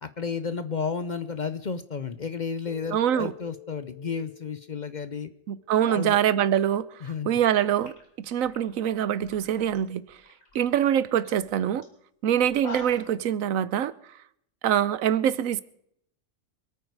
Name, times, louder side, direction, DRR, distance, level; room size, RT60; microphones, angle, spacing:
voice 1, 0.0-5.3 5.9-6.2 7.0-7.4, left 5 dB, 45° left, 0.7 m, -32 dB
Keyboard (musical), 2.7-5.9, left 14 dB, ahead, 3.0 m, -49 dB
voice 2, 2.9-3.3 5.5-6.9 7.2-7.9 8.3-10.0 10.5-11.9 12.2-13.9 14.6-15.6, right 10 dB, 85° right, 1.1 m, -24 dB
sound 1, 7.8-9.8 10.1-10.6 10.9-11.0 11.2-11.4 11.8-11.9 12.4-13.2, left 3 dB, 80° left, 3.3 m, -44 dB
25.5 x 9.2 x 4.7 m
omnidirectional pair, 1.4 m